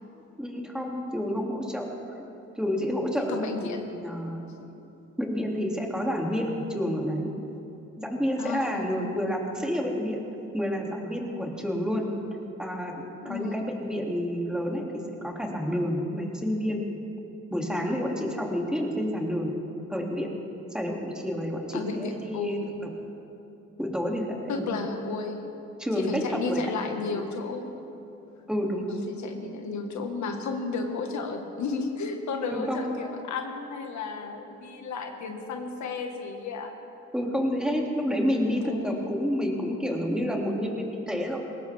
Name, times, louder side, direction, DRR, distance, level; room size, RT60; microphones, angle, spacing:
voice 1, 0.4-1.9 2.5-4.4 5.2-7.3 8.0-10.2 10.5-12.1 12.6-12.9 13.2-16.8 17.5-19.5 19.9-20.3 20.7-22.6 23.8-24.3 24.6-24.7 25.8-27.3 28.5-29.0 32.5-32.8 37.1-41.4, equal, 5° right, 0 dB, 2.5 m, -29 dB
voice 2, 3.2-3.9 8.4-8.9 13.2-13.6 21.7-22.7 24.5-25.5 25.9-27.7 28.8-36.7 38.5-39.1, left 4 dB, 70° left, 4 dB, 1.6 m, -33 dB
20.5 x 18.0 x 3.5 m, 2.9 s
cardioid pair, 90°, 30 cm